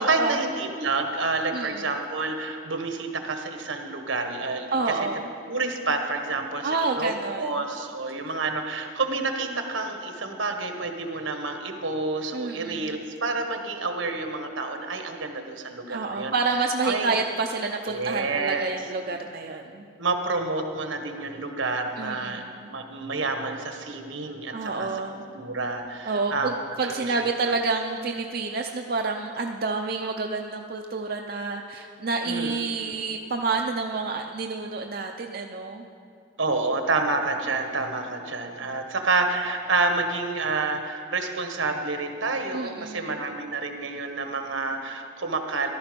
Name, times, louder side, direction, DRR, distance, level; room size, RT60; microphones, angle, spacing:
voice 1, 0.0-4.7 5.5-16.3 16.8-17.1 17.9-18.6 20.0-22.4 22.7-26.5 26.8-27.2 27.4-27.5 32.2-32.6 32.8-33.0 36.4-45.7, right 3 dB, 80° right, 5 dB, 1.4 m, -29 dB
voice 2, 1.5-1.9 4.7-5.3 6.6-7.5 12.3-13.1 15.9-19.8 22.0-22.5 24.5-25.3 26.1-26.5 26.8-35.9 42.5-43.2, right 3 dB, 50° right, 3 dB, 0.5 m, -29 dB
14.5 x 12.0 x 5.2 m, 2.5 s
head